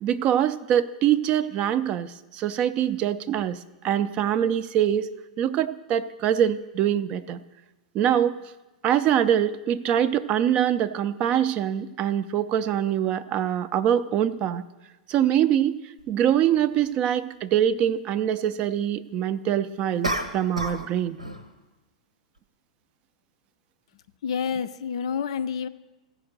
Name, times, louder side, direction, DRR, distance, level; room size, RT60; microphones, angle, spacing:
voice 1, 0.0-5.1 5.4-7.4 7.9-8.4 8.8-14.6 15.1-15.7 16.1-21.2, right 10 dB, 30° right, 15 dB, 0.4 m, -24 dB
sound 1, 16.0-16.1 20.0-20.9 21.2-21.5, right 1 dB, 85° right, 1.0 m, -29 dB
voice 2, 24.2-25.7, left 7 dB, 55° left, 13 dB, 0.4 m, -28 dB
15.0 x 5.0 x 6.5 m, 1.1 s
figure-of-eight pair, 100°, 4 cm